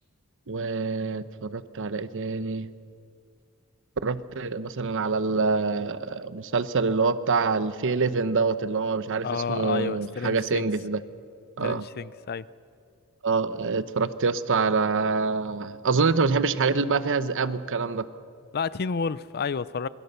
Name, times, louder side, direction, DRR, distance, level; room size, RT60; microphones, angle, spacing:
voice 1, 0.5-2.7 4.0-11.0 11.6-11.8 13.2-18.1, right 4 dB, 60° right, 14 dB, 0.9 m, -26 dB
voice 2, 9.2-10.7 11.6-12.5 18.5-19.9, left 5 dB, 45° left, 18 dB, 0.5 m, -30 dB
26.0 x 21.5 x 6.8 m, 2.3 s
head